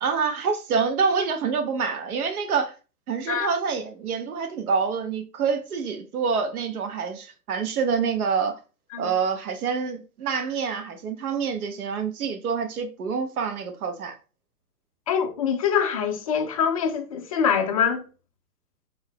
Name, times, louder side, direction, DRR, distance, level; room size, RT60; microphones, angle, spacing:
voice 1, 0.0-2.7 3.1-8.6 9.0-14.1, right 5 dB, 65° right, 1.0 m, -26 dB
voice 2, 15.1-18.0, left 7 dB, 25° left, 0.4 m, -24 dB
3.7 x 3.6 x 2.9 m
figure-of-eight pair, 115°, 46 cm